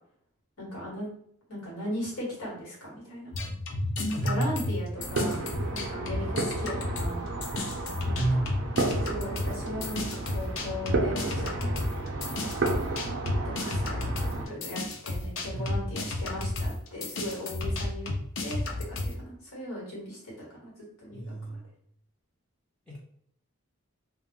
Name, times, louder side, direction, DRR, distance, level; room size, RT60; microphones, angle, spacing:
voice 1, 0.6-1.1 1.5-3.3 4.0-7.3 8.0-8.4 9.0-11.6 12.2-12.5 13.4-18.1 18.4-18.6 18.9-20.7 21.0-21.6, equal, 85° left, -3 dB, 1.3 m, -38 dB
sound 1, 3.3-7.2 7.4-19.1, left 2 dB, 60° left, 0.5 m, -32 dB
voice 2, 4.2-5.0 8.1-8.8 15.5-16.1 21.1-21.6, right 1 dB, 5° left, -7 dB, 0.6 m, -32 dB
sound 2, 5.0-14.5, right 2 dB, 60° right, 0.5 m, -32 dB
2.2 x 2.1 x 3.6 m, 0.67 s
head